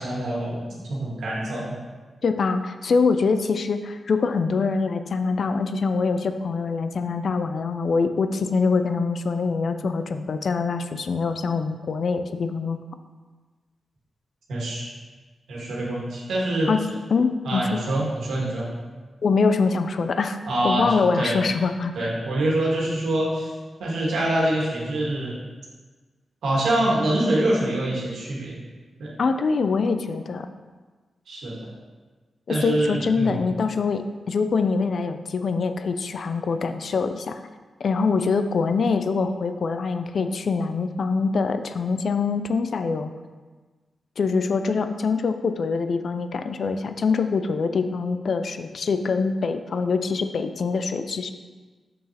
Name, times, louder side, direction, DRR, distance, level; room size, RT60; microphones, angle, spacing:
voice 1, 0.0-1.8 14.5-14.8 15.5-16.7 17.5-18.7 20.5-20.9 21.2-21.4 22.0-23.5 23.8-25.4 26.4-28.6 29.0-29.2 31.3-31.7 32.5-33.4, right 1 dB, 85° right, -5 dB, 1.7 m, -25 dB
voice 2, 2.2-12.8 16.7-16.9 17.1-17.8 19.2-20.4 20.6-22.1 29.2-30.5 32.5-37.4 37.8-43.1 44.2-51.3, left 4 dB, 70° left, 9 dB, 0.4 m, -24 dB
6.9 x 6.1 x 2.9 m, 1.4 s
cardioid pair, 50°, 0 cm